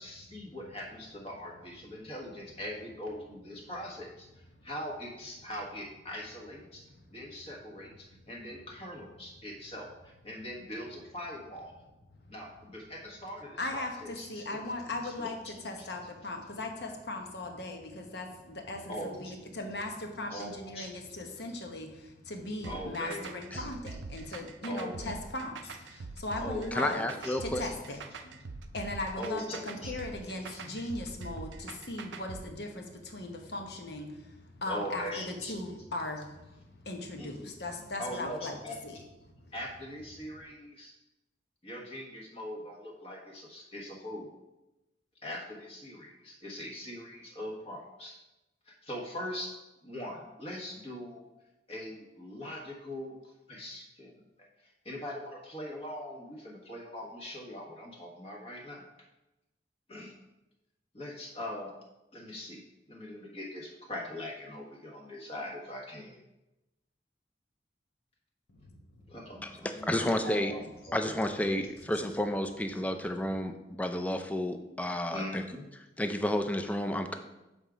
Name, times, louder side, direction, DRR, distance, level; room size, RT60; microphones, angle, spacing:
voice 1, 0.0-6.8 7.1-11.7 12.3-14.6 15.0-15.9 18.9-19.3 20.3-20.9 22.6-23.7 24.6-25.1 25.9-26.0 26.4-27.4 27.6-27.7 29.2-29.9 30.3-30.6 34.7-35.5 37.2-37.5 38.0-38.8 39.5-40.9 41.6-44.3 45.2-48.1 48.7-49.5 49.8-51.3 51.7-53.1 53.5-54.1 54.8-58.8 59.9-60.1 60.9-61.7 62.1-62.6 62.9-66.2 69.1-71.2 75.1-75.7, left 1 dB, 35° left, -1 dB, 1.3 m, -41 dB
voice 2, 13.6-27.1 27.4-28.4 28.7-38.6 38.8-39.0, left 2 dB, 65° left, 3 dB, 1.0 m, -38 dB
sound 1, 22.6-32.4, right 4 dB, 90° right, 0.5 m, -43 dB
voice 3, 26.7-27.6 69.4-70.5 70.9-75.4 76.0-77.1, left 1 dB, 10° left, 6 dB, 0.4 m, -31 dB
7.5 x 3.6 x 5.0 m, 0.99 s
head